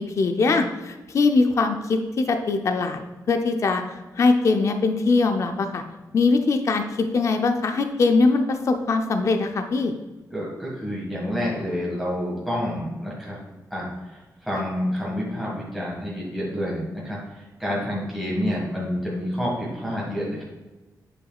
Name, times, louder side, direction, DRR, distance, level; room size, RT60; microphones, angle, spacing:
voice 1, 0.0-3.0 3.3-5.8 6.1-9.9, left 3 dB, 45° left, 6 dB, 0.5 m, -22 dB
voice 2, 10.3-13.4 13.7-20.4, equal, ahead, -6 dB, 1.7 m, -28 dB
8.0 x 5.8 x 2.4 m, 1.1 s
wide cardioid pair, 155°, 7 cm